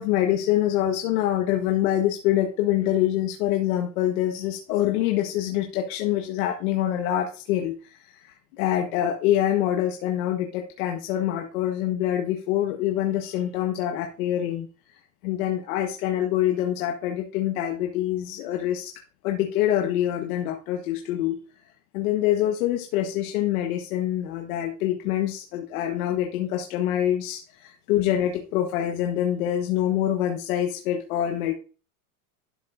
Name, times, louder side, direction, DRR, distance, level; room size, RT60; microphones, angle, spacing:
voice 1, 0.0-14.7 15.2-18.9 19.2-21.4 21.9-31.5, left 12 dB, 70° left, 3 dB, 1.3 m, -25 dB
11.5 x 6.8 x 2.5 m, 0.34 s
supercardioid pair, 140°, 44 cm